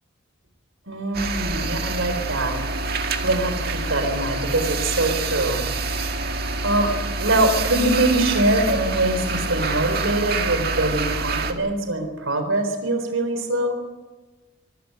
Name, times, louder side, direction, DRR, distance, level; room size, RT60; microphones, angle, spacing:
voice 1, 0.9-2.6 3.0-5.6 6.6-6.9 7.2-13.8, right 1 dB, 90° right, 7 dB, 3.9 m, -23 dB
sound 1, 1.1-11.5, right 3 dB, 50° right, 2.0 m, -26 dB
23.0 x 13.5 x 9.3 m, 1.2 s
head